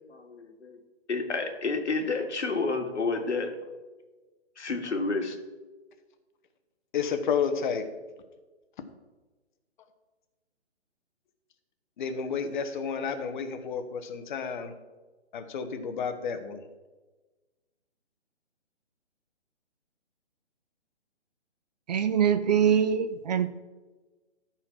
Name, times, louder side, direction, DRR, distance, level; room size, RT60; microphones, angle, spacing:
voice 1, 0.1-0.8 1.1-3.6 4.6-5.4, left 3 dB, 80° left, 4 dB, 2.0 m, -30 dB
voice 2, 6.9-7.8 12.0-14.7 15.3-16.6, left 6 dB, 45° left, 8 dB, 1.2 m, -31 dB
voice 3, 21.9-23.5, right 8 dB, 40° right, 12 dB, 0.5 m, -23 dB
13.5 x 4.4 x 5.9 m, 1.2 s
hypercardioid pair, 145°, 34 cm